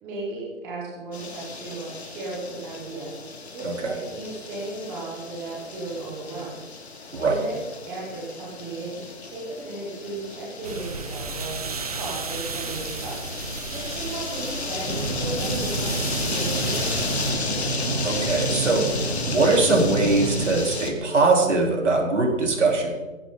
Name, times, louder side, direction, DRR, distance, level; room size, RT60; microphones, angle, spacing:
voice 1, 0.0-3.1 3.5-6.6 7.2-17.2, right 2 dB, 5° right, -5 dB, 1.1 m, -35 dB
sound 1, 1.1-20.9, left 4 dB, 55° left, 2.7 m, -34 dB
voice 2, 3.6-3.9 7.1-7.4 18.0-18.9 19.3-22.9, right 3 dB, 60° right, 1 dB, 4.3 m, -21 dB
sound 2, 10.6-17.3, right 4 dB, 30° right, 1.0 m, -34 dB
sound 3, 14.9-20.6, right 2 dB, 85° right, 5.1 m, -29 dB
17.5 x 15.5 x 4.1 m, 1.2 s
figure-of-eight pair, 160°, 40 cm